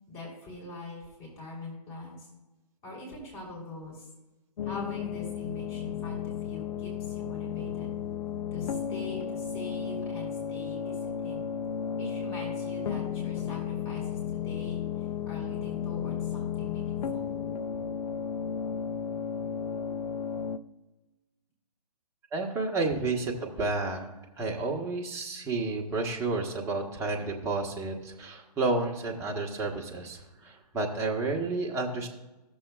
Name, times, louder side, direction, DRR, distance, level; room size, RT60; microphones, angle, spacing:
voice 1, 0.1-2.3 2.8-4.1 4.6-7.9 8.5-11.4 12.0-17.3, left 2 dB, 25° left, -3 dB, 3.3 m, -43 dB
sound 1, 4.6-20.6, left 8 dB, 75° left, 0.5 m, -34 dB
voice 2, 22.3-24.1 24.4-32.1, right 3 dB, 15° right, 0 dB, 1.0 m, -31 dB
14.5 x 7.1 x 2.3 m, 1.1 s
hypercardioid pair, 135°, 21 cm